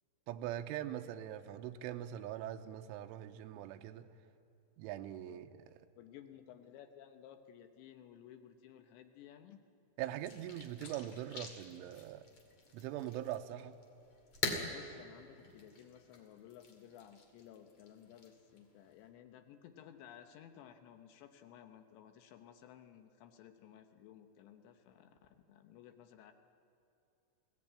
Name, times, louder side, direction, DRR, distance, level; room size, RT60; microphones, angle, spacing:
voice 1, 0.3-4.1 4.8-5.9 10.0-12.3 12.7-13.7, right 12 dB, 80° right, 3.1 m, -42 dB
voice 2, 6.0-9.6 14.7-26.3, left 10 dB, 75° left, 2.8 m, -56 dB
sound 1, 10.2-19.1, left 4 dB, 40° left, 2.4 m, -46 dB
22.0 x 17.5 x 8.8 m
omnidirectional pair, 6.0 m